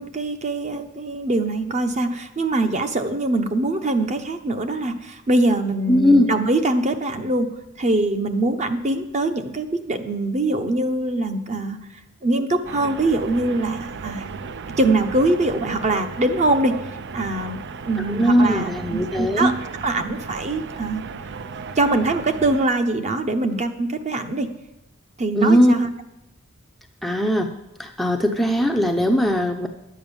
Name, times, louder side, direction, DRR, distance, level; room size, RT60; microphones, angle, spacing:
voice 1, 0.0-7.5 7.8-11.8 12.2-14.3 14.8-16.8 17.1-17.6 17.9-19.5 19.8-21.0 21.8-24.5 25.2-25.9, right 2 dB, 35° right, 7 dB, 0.9 m, -23 dB
voice 2, 5.9-6.3 18.1-19.5 25.3-25.7 27.0-27.5 27.8-29.7, equal, ahead, 2 dB, 0.6 m, -19 dB
sound 1, 12.6-22.7, right 5 dB, 55° right, 0.5 m, -35 dB
10.5 x 8.6 x 7.1 m, 0.91 s
head